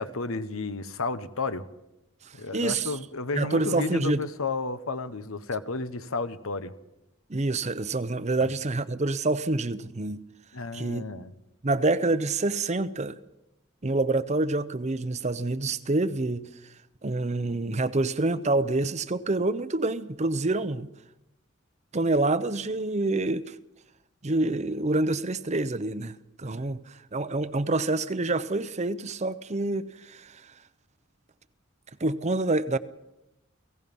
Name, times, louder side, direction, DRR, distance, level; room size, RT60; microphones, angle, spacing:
voice 1, 0.0-1.7 2.3-6.7 8.4-8.5 10.5-11.3, left 3 dB, 85° left, 1.2 m, -32 dB
voice 2, 2.5-3.0 3.4-4.2 7.3-10.2 10.7-11.1 11.6-13.2 13.8-16.5 17.0-20.9 21.9-23.6 24.2-30.5 32.0-32.8, right 2 dB, 35° right, 0.7 m, -27 dB
29.5 x 18.0 x 5.5 m
head